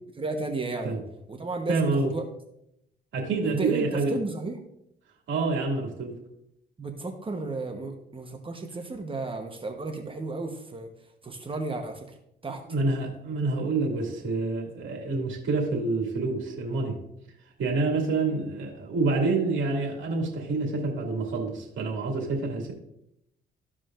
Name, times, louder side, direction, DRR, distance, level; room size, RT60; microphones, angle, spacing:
voice 1, 0.1-0.9 1.3-2.2 3.4-4.6 6.8-10.9 11.2-12.2 12.4-12.6, right 3 dB, 25° right, 4 dB, 1.0 m, -33 dB
voice 2, 1.7-2.1 3.1-4.1 5.3-6.1 12.7-17.0 17.6-22.7, right 3 dB, 75° right, 1 dB, 2.3 m, -27 dB
14.0 x 5.0 x 2.5 m, 0.77 s
cardioid pair, 90°, 20 cm